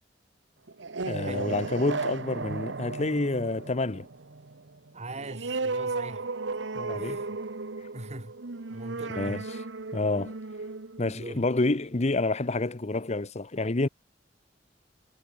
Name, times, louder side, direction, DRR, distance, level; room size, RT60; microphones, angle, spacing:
sound 1, 0.7-11.9, right 3 dB, 80° right, 1.1 m, -35 dB
voice 1, 1.0-4.1 6.8-7.2 9.2-9.4 9.9-10.3 11.0-13.9, left 2 dB, 40° left, 0.9 m, -28 dB
voice 2, 4.9-6.3 6.9-7.4 7.9-8.3 8.7-9.4 11.1-11.4, right 1 dB, 40° right, 3.3 m, -40 dB
head